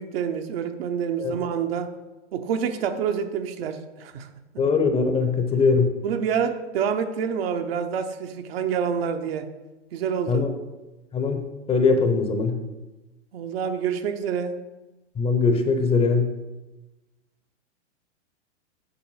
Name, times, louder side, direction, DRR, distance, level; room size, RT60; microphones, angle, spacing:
voice 1, 0.0-1.9 2.3-4.3 6.0-9.5 9.9-10.4 13.3-14.6, right 7 dB, 55° right, 7 dB, 0.9 m, -27 dB
voice 2, 4.6-5.9 10.3-10.5 11.1-12.6 15.2-16.3, left 4 dB, 15° left, 6 dB, 0.8 m, -21 dB
7.6 x 6.7 x 4.8 m, 1.1 s
hypercardioid pair, 115°, 36 cm